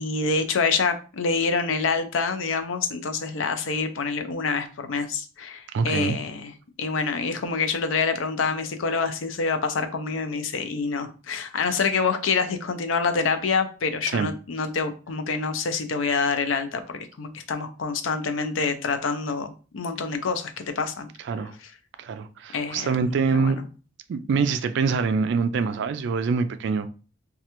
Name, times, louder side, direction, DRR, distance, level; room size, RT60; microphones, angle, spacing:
voice 1, 0.0-21.1 21.6-21.7 22.5-23.1 23.3-23.7, left 4 dB, 85° left, 0.5 m, -26 dB
voice 2, 5.7-6.2 14.1-14.3 21.3-21.5 22.0-23.6 24.1-26.9, right 5 dB, 65° right, 0.3 m, -24 dB
3.1 x 2.4 x 2.9 m
head